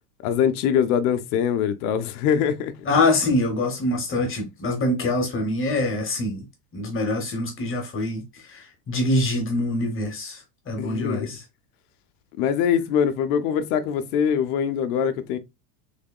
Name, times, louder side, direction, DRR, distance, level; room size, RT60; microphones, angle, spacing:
voice 1, 0.2-2.7 10.8-11.4 12.4-15.4, left 8 dB, 65° left, 0.7 m, -23 dB
voice 2, 2.8-6.4 6.7-8.2 8.5-11.4, left 2 dB, 25° left, 1.0 m, -24 dB
3.6 x 3.4 x 2.2 m
supercardioid pair, 130°, 48 cm